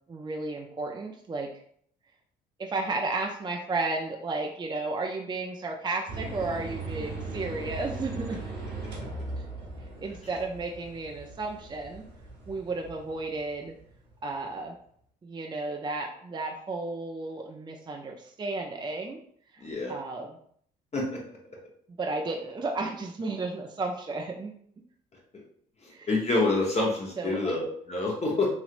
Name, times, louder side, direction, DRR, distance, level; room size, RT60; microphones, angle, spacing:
voice 1, 0.1-1.5 2.6-8.4 9.8-12.0 12.5-13.7 14.2-14.8 15.2-19.2 19.5-20.4 22.0-24.6 25.9-26.1 27.2-27.5, right 3 dB, 25° right, 2 dB, 0.5 m, -33 dB
sound 1, 6.1-14.1, right 3 dB, 65° right, 1.3 m, -39 dB
voice 2, 19.6-19.9 20.9-21.2 25.8-28.5, left 2 dB, 35° left, -2 dB, 0.9 m, -27 dB
3.2 x 2.8 x 2.5 m, 0.64 s
hypercardioid pair, 55°, 20 cm